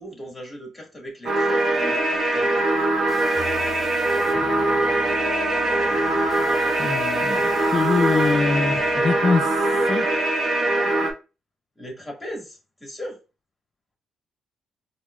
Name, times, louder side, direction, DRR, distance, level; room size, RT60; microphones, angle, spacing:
voice 1, 0.0-2.8 9.7-9.8 11.7-13.2, equal, 10° left, 1.7 m, -38 dB
sound 1, 1.3-11.1, right 2 dB, 50° right, 0.8 m, -22 dB
sound 2, 3.1-9.0, left 3 dB, 25° left, 1.0 m, -39 dB
voice 2, 6.8-10.1, left 4 dB, 45° left, 0.4 m, -24 dB
4.6 x 2.2 x 2.3 m
cardioid pair, 90°, 0 cm